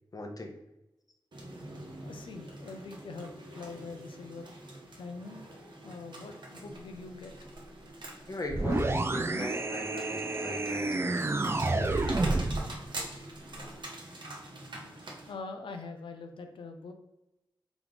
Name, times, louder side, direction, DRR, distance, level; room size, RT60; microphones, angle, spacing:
voice 1, 0.1-0.6 8.3-12.3 13.5-13.7, left 1 dB, 45° left, 3 dB, 0.8 m, -39 dB
sound 1, 1.3-15.3, right 1 dB, 65° right, 0.9 m, -45 dB
voice 2, 2.0-4.5 4.9-5.5 5.8-7.3 15.0-16.9, left 4 dB, 85° left, 5 dB, 0.5 m, -43 dB
sound 2, 8.5-12.7, right 2 dB, 30° right, 0.3 m, -29 dB
3.5 x 3.0 x 3.7 m, 0.93 s
cardioid pair, 45°, 8 cm